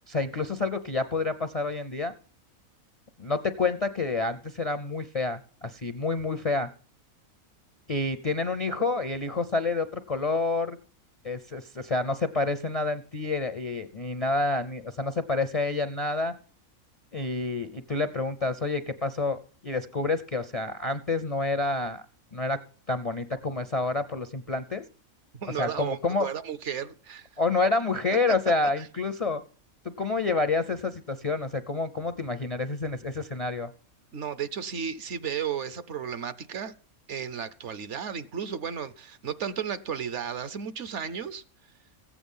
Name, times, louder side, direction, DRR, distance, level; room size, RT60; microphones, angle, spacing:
voice 1, 0.1-2.1 3.2-6.7 7.9-10.8 11.2-16.3 17.1-22.0 22.3-22.6 22.9-24.8 25.5-26.3 27.4-29.4 29.8-33.7, left 3 dB, 45° left, 0.5 m, -28 dB
voice 2, 25.4-27.3 28.8-28.9 34.1-36.7 37.1-41.4, right 8 dB, 60° right, 1.0 m, -34 dB
15.0 x 8.6 x 5.4 m
omnidirectional pair, 1.5 m